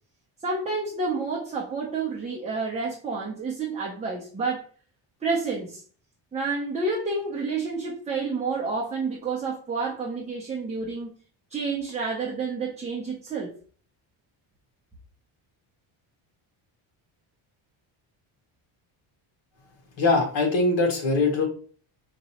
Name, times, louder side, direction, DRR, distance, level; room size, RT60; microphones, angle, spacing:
voice 1, 0.4-4.6 5.2-5.8 6.3-11.1 11.5-13.5, right 4 dB, 15° right, -3 dB, 0.7 m, -29 dB
voice 2, 20.0-21.5, left 3 dB, 70° left, 0 dB, 2.0 m, -22 dB
5.1 x 3.0 x 2.9 m, 0.42 s
cardioid pair, 155°, 48 cm